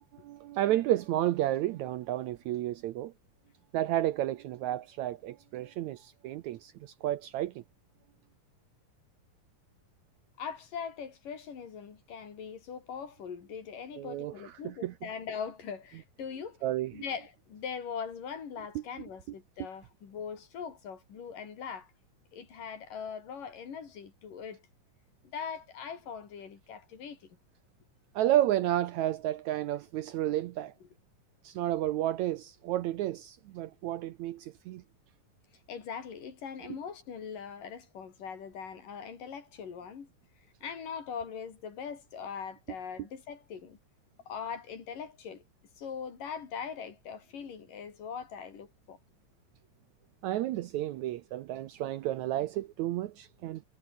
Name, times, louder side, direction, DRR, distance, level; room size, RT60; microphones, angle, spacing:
voice 1, 0.2-3.1 3.7-7.6 14.0-14.3 14.6-14.9 16.6-16.9 28.2-30.7 31.4-34.8 50.2-53.6, right 13 dB, 75° right, 1.8 m, -31 dB
voice 2, 10.4-16.6 16.9-21.9 22.3-24.6 25.2-27.3 35.7-40.1 40.6-43.8 44.3-45.4 45.8-49.0, left 6 dB, 70° left, 5.0 m, -41 dB
omnidirectional pair, 3.9 m